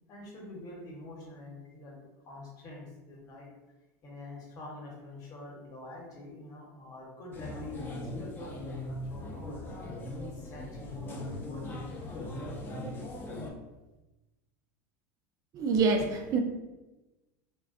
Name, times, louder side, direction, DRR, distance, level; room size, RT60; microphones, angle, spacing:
voice 1, 0.1-2.0 2.3-3.5 4.0-9.9 10.5-12.4, left 2 dB, 45° left, -2 dB, 0.9 m, -46 dB
sound 1, 7.3-13.5, left 1 dB, 25° left, 0.5 m, -39 dB
voice 2, 15.5-16.4, right 4 dB, 45° right, 4 dB, 0.4 m, -26 dB
2.5 x 2.2 x 2.5 m, 1.1 s
supercardioid pair, 105°, 9 cm